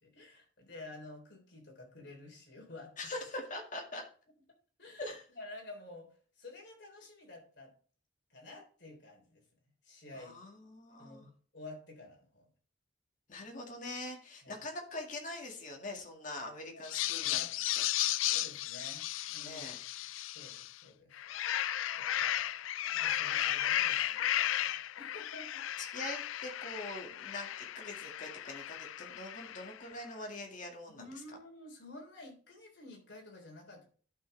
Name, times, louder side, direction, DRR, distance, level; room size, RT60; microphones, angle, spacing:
voice 1, 0.0-2.9 4.8-5.1 5.3-7.7 8.3-9.4 9.8-10.5 11.0-12.5 14.4-14.7 16.7-16.9 17.2-17.5 18.3-19.6 20.3-21.3 21.9-25.7 30.9-33.9, left 2 dB, 60° left, 1 dB, 3.6 m, -51 dB
voice 2, 3.0-4.1 5.0-5.2 10.1-11.3 13.3-17.5 19.4-19.8 25.8-31.0, left 2 dB, 40° left, 2 dB, 2.0 m, -43 dB
sound 1, 16.8-20.7 21.1-29.8, left 13 dB, 85° left, 0.4 m, -35 dB
11.0 x 6.2 x 3.4 m, 0.43 s
head